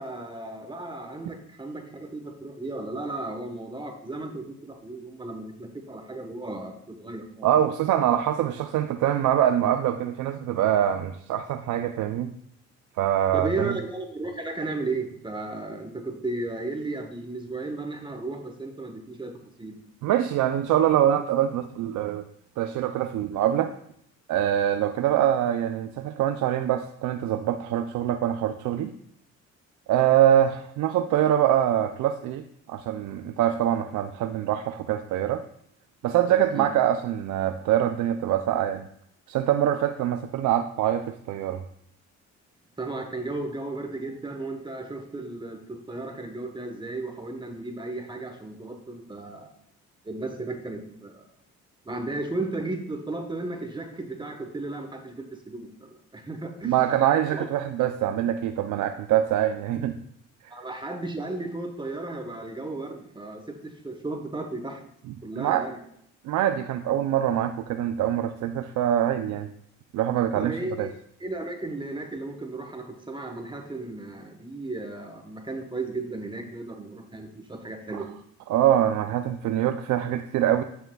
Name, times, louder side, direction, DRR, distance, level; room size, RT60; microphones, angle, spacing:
voice 1, 0.0-7.5 13.3-19.3 19.6-19.8 36.3-36.7 42.8-49.5 50.0-51.3 51.8-56.7 57.3-57.5 60.5-64.8 65.2-65.8 70.3-70.9 71.2-78.1, right 2 dB, 15° right, 4 dB, 1.1 m, -34 dB
voice 2, 7.4-12.3 13.0-13.8 20.0-22.2 22.6-23.7 24.3-28.9 29.9-35.4 36.0-38.9 39.3-41.6 56.6-60.0 60.4-60.5 65.4-65.7 66.2-69.5 69.9-70.9 77.9-78.0 78.5-80.6, right 11 dB, 75° right, 8 dB, 0.5 m, -24 dB
9.0 x 6.5 x 2.3 m, 0.71 s
cardioid pair, 90°, 30 cm